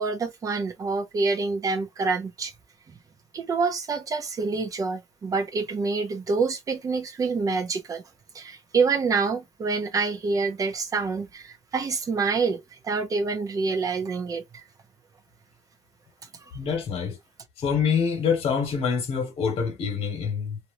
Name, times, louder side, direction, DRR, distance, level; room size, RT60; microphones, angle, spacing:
voice 1, 0.0-2.5 3.3-8.0 8.3-14.6 16.4-16.5, right 4 dB, 30° right, 0.7 m, -27 dB
voice 2, 16.5-17.2 17.6-20.6, left 6 dB, 55° left, 1.6 m, -26 dB
3.0 x 2.7 x 2.6 m
cardioid pair, 160°, 11 cm